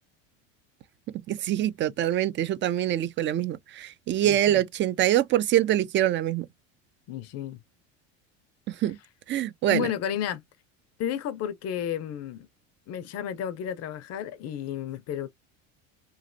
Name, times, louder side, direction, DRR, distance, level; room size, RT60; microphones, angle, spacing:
voice 1, 1.3-6.5 8.8-9.0 9.3-9.9, right 12 dB, 35° right, 0.4 m, -24 dB
voice 2, 4.2-4.6 7.1-7.6 9.7-10.4 11.0-12.5 12.9-15.3, left 10 dB, 45° left, 0.5 m, -32 dB
3.1 x 2.5 x 2.5 m
supercardioid pair, 100°, 37 cm